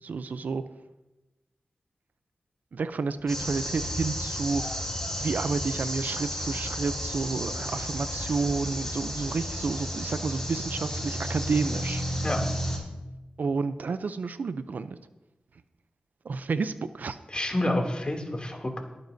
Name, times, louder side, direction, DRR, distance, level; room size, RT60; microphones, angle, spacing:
voice 1, 0.0-0.6 2.7-4.8 5.2-12.0 13.4-15.0 16.2-17.2, right 4 dB, 75° right, 12 dB, 0.6 m, -30 dB
sound 1, 3.3-12.8, equal, 15° left, 5.2 m, -32 dB
voice 2, 17.3-18.8, left 1 dB, 35° left, 1 dB, 2.7 m, -28 dB
22.5 x 9.4 x 2.7 m, 1.0 s
cardioid pair, 50°, 3 cm